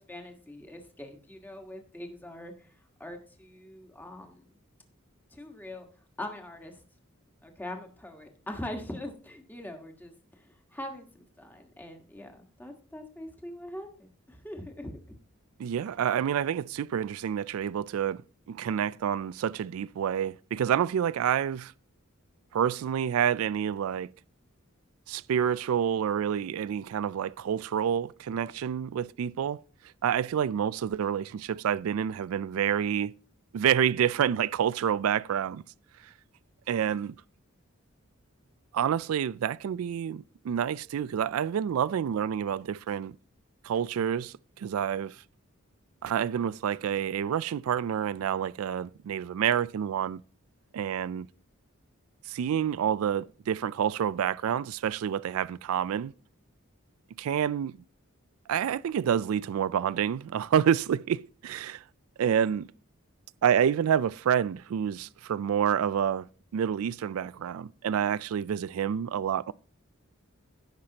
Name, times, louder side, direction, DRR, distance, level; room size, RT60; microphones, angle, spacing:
voice 1, 0.0-2.7 3.0-4.6 5.3-5.9 6.2-6.8 7.4-15.1, left 1 dB, 10° left, 1.4 m, -42 dB
voice 2, 15.6-18.2 18.5-21.7 22.5-24.1 25.1-29.6 30.0-33.1 33.5-35.6 36.7-37.2 38.7-43.1 43.6-45.2 46.0-50.2 50.7-51.3 52.3-56.1 57.2-57.8 58.5-61.8 62.2-62.7 63.4-66.3 66.5-69.5, right 8 dB, 80° right, 0.3 m, -28 dB
16.0 x 5.9 x 2.9 m
head